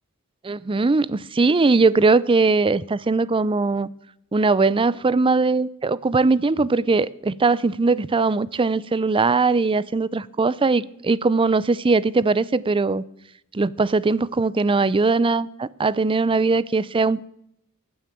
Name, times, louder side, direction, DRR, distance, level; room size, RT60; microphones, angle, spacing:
voice 1, 0.4-3.9 4.3-13.0 13.5-17.3, right 3 dB, 25° right, 0.5 m, -20 dB
15.5 x 9.5 x 7.5 m
head